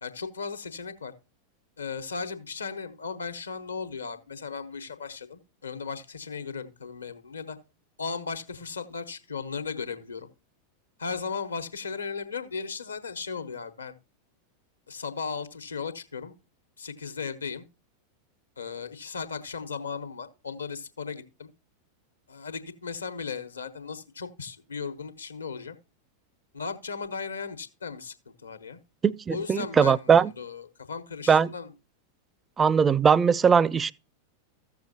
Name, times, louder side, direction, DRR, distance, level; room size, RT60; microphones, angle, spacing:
voice 1, 0.0-1.1 1.8-7.6 8.0-10.3 11.0-13.9 14.9-16.4 16.8-17.7 18.6-21.5 22.3-25.8 26.5-28.8 29.3-31.7, left 5 dB, 75° left, 1.2 m, -36 dB
voice 2, 29.0-30.3 31.3-31.5 32.6-33.9, right 6 dB, 20° right, 0.4 m, -20 dB
15.0 x 6.8 x 2.8 m
figure-of-eight pair, 90°, 0 cm